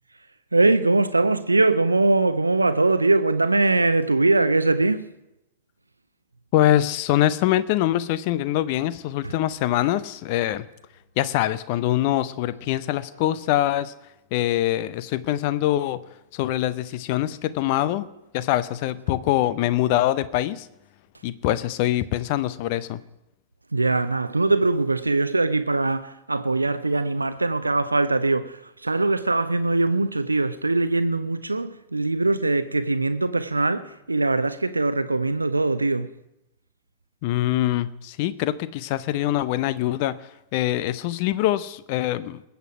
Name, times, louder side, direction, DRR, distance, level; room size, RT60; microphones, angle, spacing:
voice 1, 0.5-5.1 9.2-9.3 23.7-36.1, right 2 dB, 80° right, 0.5 m, -22 dB
voice 2, 6.5-10.6 11.2-13.9 14.3-16.0 16.3-18.1 18.3-20.7 21.2-23.0 37.2-40.2 40.5-42.4, left 13 dB, 45° left, 0.7 m, -24 dB
21.0 x 8.2 x 4.9 m
figure-of-eight pair, 90°, 0 cm